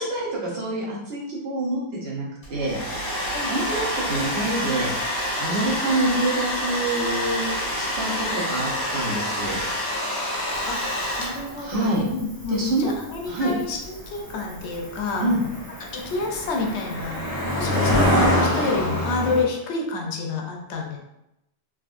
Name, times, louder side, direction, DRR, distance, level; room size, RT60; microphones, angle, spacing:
voice 1, 0.0-2.8 3.5-4.9 5.4-7.4 7.7-9.6 11.6-12.0 12.5-12.9 13.3-13.5 15.2-15.4, right 2 dB, 65° right, -5 dB, 1.2 m, -26 dB
Domestic sounds home sounds, 2.4-11.6, equal, 30° left, 1.5 m, -27 dB
voice 2, 7.8-8.2 10.6-15.3 15.8-17.2 17.5-21.0, left 3 dB, 80° left, 1 dB, 0.9 m, -29 dB
Cricket, 10.5-19.4, left 1 dB, 25° right, 0.7 m, -26 dB
3.6 x 2.6 x 2.4 m, 0.86 s
omnidirectional pair, 1.1 m